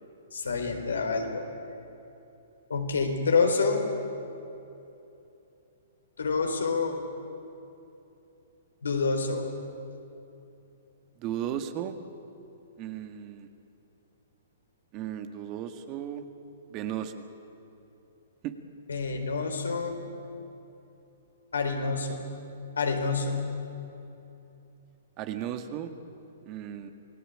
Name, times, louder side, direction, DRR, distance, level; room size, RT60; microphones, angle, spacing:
voice 1, 0.3-1.5 2.7-3.8 6.2-7.0 8.8-9.5 18.9-20.0 21.5-22.3 22.8-23.4, left 4 dB, 80° left, 4 dB, 4.1 m, -27 dB
voice 2, 11.2-12.0 12.8-13.5 14.9-16.2 16.7-17.2 18.4-18.5 25.2-25.9 26.5-26.9, right 10 dB, 35° right, 7 dB, 1.9 m, -35 dB
28.0 x 18.5 x 8.9 m, 2.9 s
hypercardioid pair, 125°, 0 cm